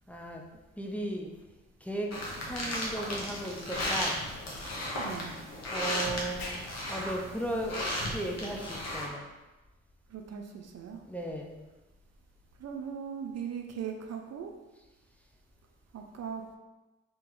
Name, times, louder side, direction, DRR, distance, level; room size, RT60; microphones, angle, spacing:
voice 1, 0.1-0.4 0.8-1.3 1.8-2.1 2.4-4.2 5.7-6.6 6.9-7.8 8.1-9.3 11.0-11.7, right 1 dB, 5° left, 1 dB, 0.6 m, -36 dB
sound 1, 2.1-9.1, left 1 dB, 50° left, 1.2 m, -35 dB
Explosion, 3.8-4.1 6.4-6.7, left 2 dB, 80° left, 0.7 m, -37 dB
voice 2, 4.9-5.3 10.1-11.0 12.6-14.5 15.9-16.4, right 7 dB, 50° right, 3 dB, 0.5 m, -39 dB
3.0 x 2.9 x 3.7 m, 1.1 s
hypercardioid pair, 45°, 34 cm